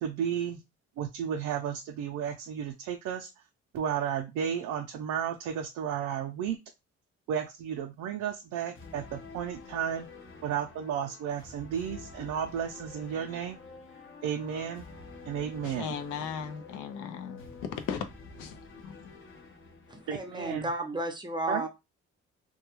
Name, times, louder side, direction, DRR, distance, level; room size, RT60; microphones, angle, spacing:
voice 1, 0.0-0.6 1.0-3.3 3.7-6.6 7.3-10.1 10.4-13.6 14.2-14.9 15.3-16.0 20.1-20.7 21.5-21.7, right 8 dB, 85° right, 3 dB, 0.5 m, -33 dB
sound 1, 8.7-20.7, left 3 dB, 40° left, 0.7 m, -49 dB
voice 2, 15.6-18.1 18.3-19.1, left 7 dB, 85° left, 8 dB, 0.5 m, -37 dB
voice 3, 19.9-21.7, right 1 dB, 15° right, 4 dB, 0.6 m, -33 dB
2.3 x 2.2 x 2.9 m, 0.23 s
cardioid pair, 90°, 30 cm